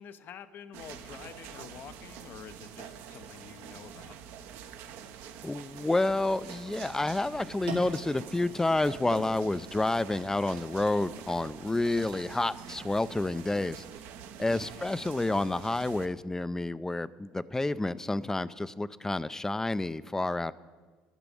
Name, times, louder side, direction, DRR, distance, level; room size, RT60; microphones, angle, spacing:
voice 1, 0.0-4.2 14.4-14.9, left 8 dB, 55° left, 13 dB, 0.7 m, -48 dB
sound 1, 0.7-16.1, right 8 dB, 70° right, 1.0 m, -46 dB
voice 2, 5.4-13.8 14.4-20.5, left 2 dB, 10° left, 17 dB, 0.5 m, -29 dB
sound 2, 5.9-13.9, right 3 dB, 85° right, 2.7 m, -47 dB
12.0 x 6.0 x 9.2 m, 1.4 s
hypercardioid pair, 75°, 4 cm